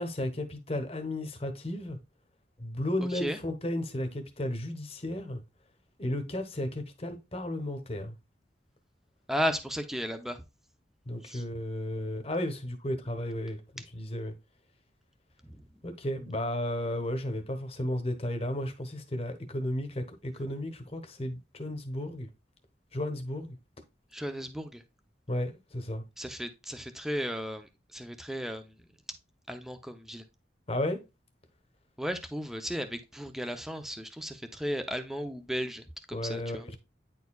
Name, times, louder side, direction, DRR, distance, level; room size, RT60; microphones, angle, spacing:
voice 1, 0.0-2.0 2.6-5.4 6.0-8.1 11.1-13.6 13.9-14.3 15.8-22.3 22.9-23.6 25.3-26.0 30.7-31.0 36.1-36.8, left 1 dB, 35° left, 1.0 m, -33 dB
voice 2, 3.0-3.4 9.3-10.4 11.2-11.4 15.4-15.6 24.1-24.8 26.2-28.7 29.5-30.2 32.0-36.8, equal, ahead, 0.6 m, -35 dB
9.3 x 4.5 x 2.3 m
head